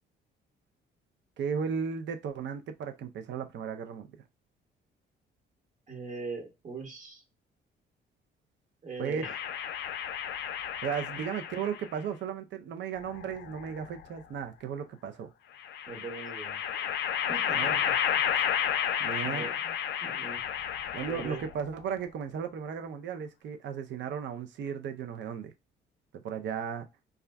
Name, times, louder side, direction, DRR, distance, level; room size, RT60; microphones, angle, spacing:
voice 1, 1.4-4.1 9.0-9.2 10.8-15.3 17.5-17.8 19.0-19.5 20.9-25.5 26.2-26.9, right 7 dB, 65° right, 0.5 m, -35 dB
voice 2, 5.9-7.2 8.8-9.4 15.9-16.6 17.3-18.2 19.2-19.7 20.0-20.4 21.1-21.4, right 4 dB, 40° right, 1.3 m, -41 dB
sound 1, 9.2-11.9 13.0-14.0 15.6-21.6, left 9 dB, 65° left, 0.4 m, -32 dB
2.4 x 2.2 x 3.3 m
cardioid pair, 90°, 20 cm